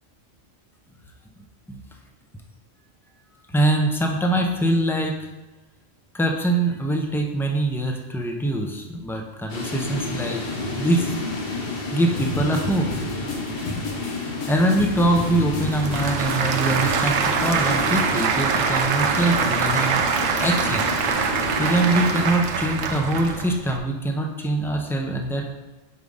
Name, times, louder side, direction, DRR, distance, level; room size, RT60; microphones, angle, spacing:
voice 1, 3.5-5.2 6.1-10.4 10.8-11.1 11.9-12.9 14.2-20.0 20.4-20.9 21.6-25.5, right 1 dB, 5° left, 1 dB, 0.4 m, -23 dB
sound 1, 9.5-22.3, left 3 dB, 50° left, 1.2 m, -31 dB
sound 2, 12.2-18.1, left 3 dB, 85° left, 1.4 m, -32 dB
Applause / Crowd, 15.0-23.8, right 6 dB, 90° right, 1.0 m, -24 dB
4.9 x 4.9 x 5.4 m, 1.1 s
omnidirectional pair, 1.3 m